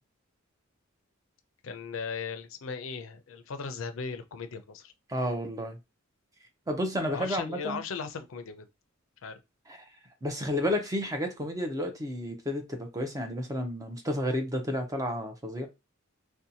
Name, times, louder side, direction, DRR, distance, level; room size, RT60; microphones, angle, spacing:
voice 1, 1.6-4.9 7.1-8.7 9.2-9.4, left 5 dB, 70° left, 0.4 m, -37 dB
voice 2, 5.1-5.8 6.7-7.8 9.7-9.8 10.2-15.7, equal, 15° right, 0.6 m, -31 dB
2.7 x 2.2 x 2.7 m
head